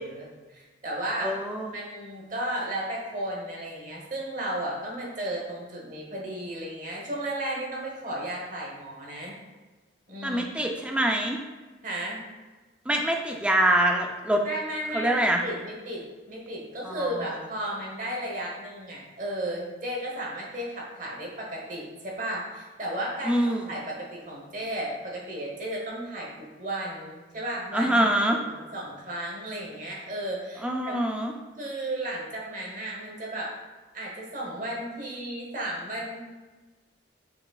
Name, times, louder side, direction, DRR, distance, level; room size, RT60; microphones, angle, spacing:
voice 1, 0.0-1.3 1.7-9.3 10.1-10.5 11.8-12.2 14.4-23.4 23.7-31.0 31.6-33.5 33.9-36.2, right 1 dB, 45° right, -2 dB, 1.0 m, -34 dB
voice 2, 1.2-1.7 10.2-11.4 12.9-14.4 14.9-15.4 16.8-17.1 23.2-23.6 27.7-28.4 30.6-31.3, right 1 dB, 5° right, 1 dB, 0.4 m, -24 dB
6.0 x 3.1 x 2.3 m, 1.3 s
head